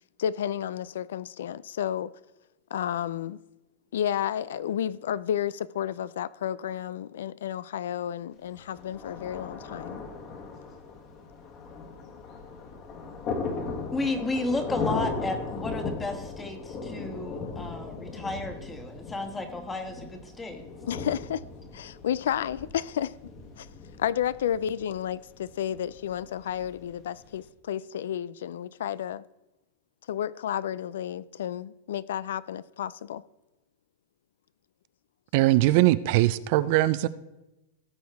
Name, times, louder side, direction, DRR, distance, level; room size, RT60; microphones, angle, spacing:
voice 1, 0.2-2.1 2.7-3.4 3.9-10.0 20.9-21.4 21.7-23.1 23.6-23.7 24.0-29.2 30.1-33.2, left 10 dB, 80° left, 0.3 m, -31 dB
Thunder, 8.5-27.4, left 4 dB, 35° left, 1.6 m, -38 dB
voice 2, 13.9-20.6, left 2 dB, 10° left, 1.4 m, -33 dB
voice 3, 35.3-37.1, right 16 dB, 50° right, 0.4 m, -21 dB
17.5 x 6.3 x 3.5 m
supercardioid pair, 145°, 0 cm